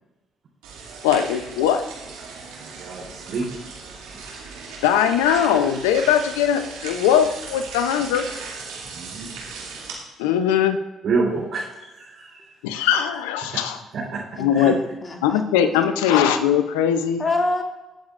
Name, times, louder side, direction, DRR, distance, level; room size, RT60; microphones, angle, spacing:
sound 1, 0.6-9.9, right 4 dB, 80° right, 2.6 m, -37 dB
voice 1, 1.0-1.8 4.8-8.2 10.2-10.8 12.6-13.8 14.4-14.8 15.2-17.2, left 9 dB, 80° left, 9 dB, 0.7 m, -20 dB
voice 2, 2.8-3.5 8.9-9.3 11.0-11.6 12.2-12.3 13.9-14.2 14.6-14.7, right 4 dB, 60° right, -6 dB, 3.8 m, -26 dB
voice 3, 14.4-15.4 16.1-16.4 17.2-17.6, left 2 dB, 30° left, 1 dB, 2.6 m, -26 dB
22.5 x 7.7 x 2.6 m, 1.0 s
hypercardioid pair, 50°, 0 cm